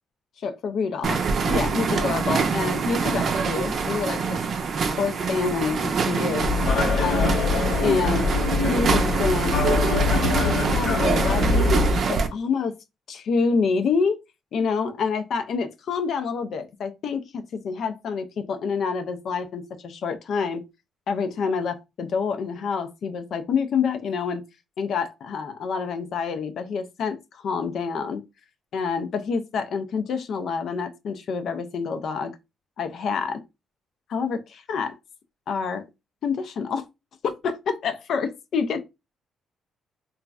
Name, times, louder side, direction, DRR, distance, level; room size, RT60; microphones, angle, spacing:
voice 1, 0.4-4.4 5.0-6.5 7.0-7.4 7.8-8.4 8.7-9.6 10.4-11.8 12.1-12.7 13.1-14.2 14.5-20.6 21.1-24.4 24.8-28.2 28.7-32.3 32.8-33.4 34.1-35.0 35.5-35.8 36.2-36.8 37.4-38.8, left 5 dB, 65° left, 0.3 m, -27 dB
sound 1, 1.0-12.3, right 5 dB, 60° right, 0.5 m, -25 dB
sound 2, 6.4-12.0, left 3 dB, 85° left, 1.1 m, -23 dB
3.0 x 2.4 x 2.3 m
cardioid pair, 90°, 0 cm